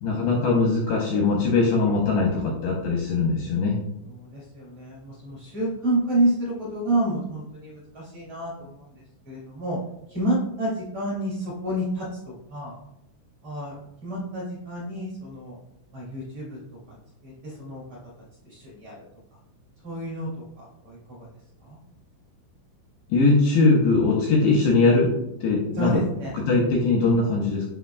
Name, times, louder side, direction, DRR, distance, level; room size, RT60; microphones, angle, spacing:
voice 1, 0.0-3.8 23.1-25.1 25.4-26.0 26.5-27.6, left 3 dB, 80° left, -2 dB, 2.6 m, -21 dB
voice 2, 4.1-8.9 9.3-9.8 10.1-12.8 13.4-13.7 14.0-15.6 15.9-16.6 17.2-17.8 18.4-19.0 19.8-20.3 20.8-21.3 21.6-21.8 25.7-26.3, right 1 dB, 45° right, -6 dB, 2.5 m, -29 dB
8.5 x 5.9 x 2.3 m, 0.84 s
omnidirectional pair, 6.0 m